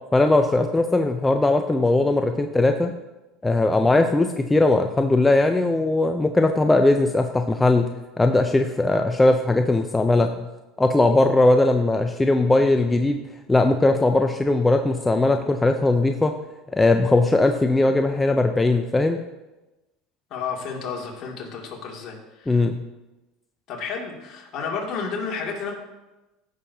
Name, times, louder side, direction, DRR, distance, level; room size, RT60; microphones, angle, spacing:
voice 1, 0.1-2.9 3.4-7.9 8.2-10.4 10.8-13.2 13.5-16.3 16.7-19.2 22.5-22.8, left 2 dB, 10° left, 5 dB, 0.5 m, -19 dB
voice 2, 20.3-22.6 23.7-25.8, left 5 dB, 50° left, -1 dB, 2.3 m, -31 dB
14.5 x 6.5 x 2.7 m, 1.1 s
supercardioid pair, 105°, 0 cm